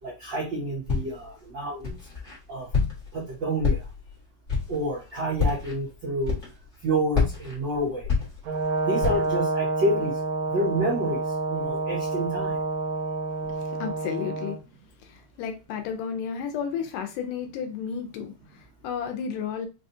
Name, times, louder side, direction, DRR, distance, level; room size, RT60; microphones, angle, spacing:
voice 1, 0.0-2.0 2.5-2.7 3.1-3.9 4.7-6.4 6.8-8.1 8.8-10.2 10.5-11.2 11.5-12.6, right 1 dB, 90° right, 1.0 m, -28 dB
Walk footsteps, 0.9-1.3 1.8-2.4 2.7-3.2 3.6-4.1 4.5-4.8 5.3-5.7 6.2-6.8 7.1-8.7 9.0-9.4, left 5 dB, 55° left, 0.7 m, -27 dB
Brass instrument, 8.5-14.6, right 3 dB, 70° right, 1.7 m, -28 dB
voice 2, 13.4-14.6 15.0-19.7, left 7 dB, 80° left, 2.1 m, -33 dB
5.4 x 2.3 x 2.6 m
omnidirectional pair, 4.0 m